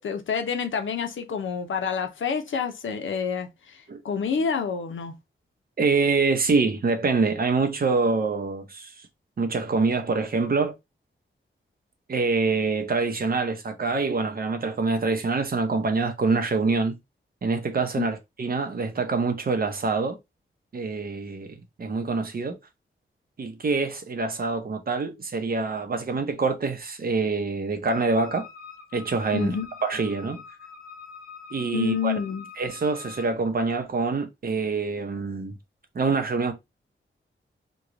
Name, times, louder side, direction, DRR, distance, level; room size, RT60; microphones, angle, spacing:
voice 1, 0.0-3.8 4.0-5.1 18.0-18.1 29.3-29.7 31.7-32.5, left 6 dB, 75° left, 0.7 m, -28 dB
voice 2, 5.8-9.1 9.4-10.7 12.1-17.0 17.4-20.2 20.7-22.6 23.4-28.5 28.9-29.6 29.8-30.4 31.5-32.1 32.6-35.6 35.9-36.5, right 4 dB, 50° right, 0.7 m, -25 dB
Wind instrument woodwind instrument, 27.9-33.4, left 5 dB, 40° left, 1.5 m, -44 dB
3.0 x 2.3 x 3.7 m
wide cardioid pair, 120°, 20 cm